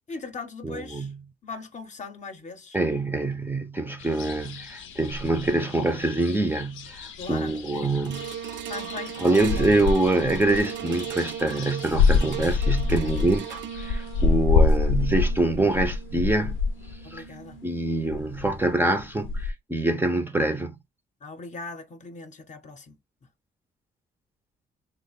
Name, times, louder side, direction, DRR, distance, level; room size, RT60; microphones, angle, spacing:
voice 1, 0.1-1.1 1.4-2.8 7.2-8.1 8.7-9.7 12.9-13.2 14.4-14.7 17.0-17.6 21.2-23.0, left 3 dB, 40° left, 0.7 m, -40 dB
voice 2, 0.6-1.2 2.7-8.2 9.2-16.6 17.1-17.2 17.6-20.8, right 2 dB, 10° right, 0.5 m, -25 dB
sound 1, 4.0-17.2 17.5-17.6 17.9-19.5, left 4 dB, 80° left, 0.6 m, -27 dB
sound 2, 8.0-18.4 19.0-19.1, right 9 dB, 70° right, 0.4 m, -39 dB
2.9 x 2.1 x 4.0 m
cardioid pair, 90°, 20 cm